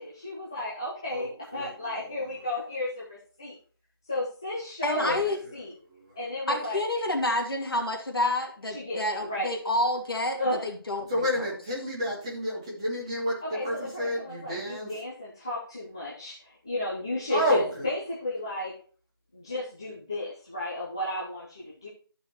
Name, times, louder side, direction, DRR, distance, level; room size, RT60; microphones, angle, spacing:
voice 1, 0.0-3.6 4.1-5.7 6.1-6.8 8.7-9.5 10.4-10.7 13.5-18.7 19.3-21.9, left 1 dB, 10° left, -8 dB, 0.6 m, -33 dB
voice 2, 1.1-2.4 4.9-5.5 5.8-6.2 11.1-15.0 17.3-17.9, equal, 15° right, -5 dB, 1.7 m, -31 dB
voice 3, 4.8-5.4 6.5-11.2, left 1 dB, 65° left, 1 dB, 2.5 m, -28 dB
13.5 x 5.5 x 3.0 m, 0.42 s
figure-of-eight pair, 175°, 13 cm